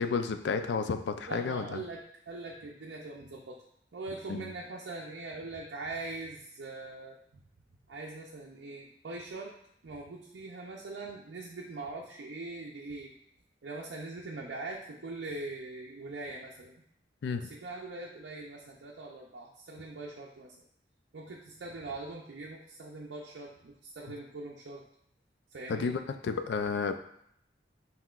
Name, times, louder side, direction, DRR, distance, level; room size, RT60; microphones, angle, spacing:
voice 1, 0.0-1.8 4.3-4.5 17.2-17.5 25.7-27.0, left 5 dB, 80° left, 8 dB, 0.4 m, -32 dB
voice 2, 1.3-3.6 3.9-7.2 7.9-9.5 9.8-13.1 13.6-16.7 17.4-20.5 21.1-24.8 25.5-26.0, right 2 dB, 85° right, -2 dB, 0.5 m, -42 dB
5.6 x 3.0 x 2.4 m, 0.71 s
head